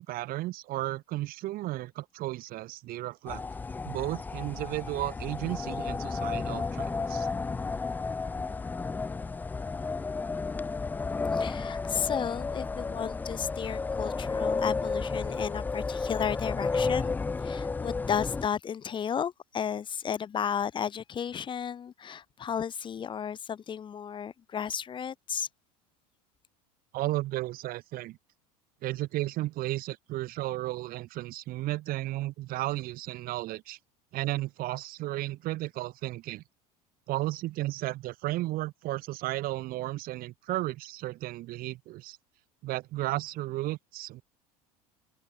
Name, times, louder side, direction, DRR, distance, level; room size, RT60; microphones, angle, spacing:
voice 1, 0.0-3.4 3.8-7.3 26.9-28.2 28.8-33.8 34.1-36.4 37.1-42.2 42.6-44.2, right 17 dB, 45° right, 2.2 m, -34 dB
sound 1, 3.3-18.5, left 4 dB, 10° left, 0.3 m, -32 dB
voice 2, 11.3-17.1 17.4-25.5, left 8 dB, 25° left, 0.9 m, -33 dB
figure-of-eight pair, 70°, 20 cm